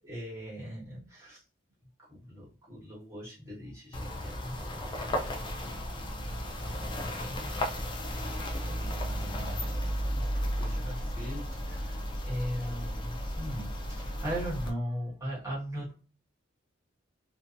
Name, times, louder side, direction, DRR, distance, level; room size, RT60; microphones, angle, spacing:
voice 1, 0.0-1.4 2.1-9.7 10.1-16.0, equal, 15° right, -7 dB, 1.3 m, -40 dB
sound 1, 3.9-14.7, equal, 25° left, 0.4 m, -34 dB
2.7 x 2.2 x 2.5 m, 0.34 s
head